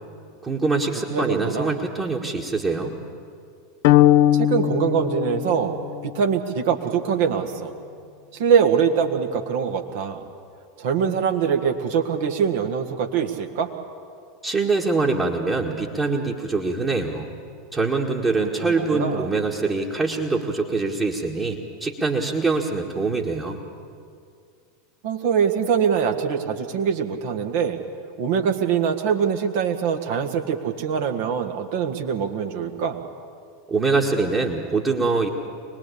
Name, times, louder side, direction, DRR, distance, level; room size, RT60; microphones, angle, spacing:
voice 1, 0.4-2.9 14.4-17.3 17.7-23.6 33.7-35.3, right 3 dB, 25° right, -3 dB, 1.9 m, -24 dB
voice 2, 1.1-1.7 4.3-5.7 6.0-7.7 8.3-10.3 10.8-13.7 18.4-19.3 25.0-27.8 28.2-33.0, right 7 dB, 55° right, 4 dB, 1.9 m, -23 dB
sound 1, 3.8-6.2, left 12 dB, 55° left, 0.6 m, -19 dB
24.0 x 20.0 x 8.6 m, 2.3 s
figure-of-eight pair, 80°, 0 cm